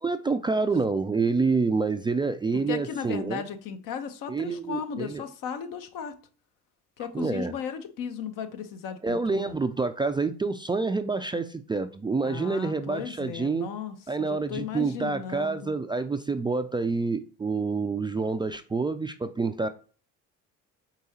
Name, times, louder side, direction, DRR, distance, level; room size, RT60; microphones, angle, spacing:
voice 1, 0.0-3.4 4.3-5.2 7.1-7.5 9.0-13.7 14.1-19.7, right 4 dB, 15° right, 8 dB, 0.3 m, -27 dB
voice 2, 2.7-6.2 7.0-9.6 12.2-15.8, left 7 dB, 65° left, 9 dB, 0.9 m, -36 dB
4.9 x 3.8 x 2.8 m, 0.38 s
hypercardioid pair, 65°, 36 cm